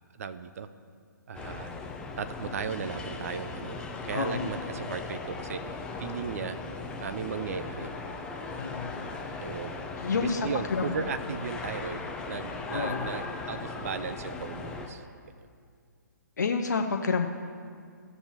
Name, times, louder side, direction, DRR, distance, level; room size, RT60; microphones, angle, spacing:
voice 1, 0.2-0.7 1.3-1.7 2.2-6.6 7.0-7.9 9.4-9.8 10.1-15.0, right 6 dB, 50° right, 12 dB, 0.6 m, -36 dB
sound 1, 1.3-14.9, left 3 dB, 10° left, 0.6 m, -38 dB
voice 2, 4.1-4.5 8.6-8.9 10.0-10.9 12.7-13.1 16.4-17.3, left 5 dB, 65° left, 5 dB, 0.7 m, -29 dB
15.5 x 6.8 x 2.9 m, 2.2 s
figure-of-eight pair, 130°, 10 cm